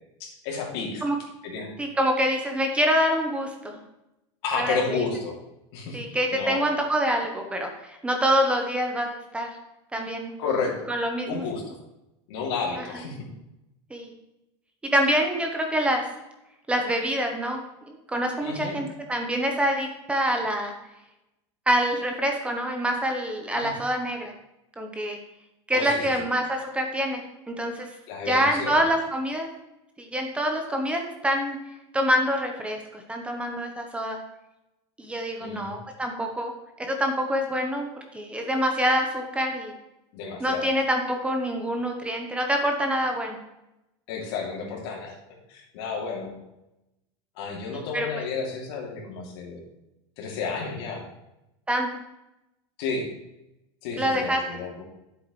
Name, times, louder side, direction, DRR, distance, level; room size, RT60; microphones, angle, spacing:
voice 1, 0.2-1.0 1.4-1.7 4.4-5.3 5.7-6.6 10.4-10.9 11.3-11.8 12.3-13.2 18.4-18.8 23.5-23.7 25.7-26.0 28.1-28.9 35.4-35.7 40.1-40.7 44.1-45.1 45.5-46.4 47.4-49.6 50.2-51.0 52.8-53.1 53.8-54.8, left 4 dB, 65° left, -1 dB, 2.7 m, -31 dB
voice 2, 1.8-3.8 4.6-5.0 5.9-9.5 9.9-10.3 10.9-11.4 13.9-14.1 14.8-16.0 16.7-17.6 17.9-20.7 21.7-24.3 24.8-25.2 25.7-27.9 28.3-29.5 30.0-31.6 31.9-34.2 35.0-36.5 36.8-37.9 38.1-39.7 40.4-43.4 47.9-48.2 51.7-51.9 54.0-54.6, equal, 10° right, 3 dB, 0.9 m, -26 dB
10.0 x 7.9 x 3.1 m, 0.92 s
supercardioid pair, 145°, 14 cm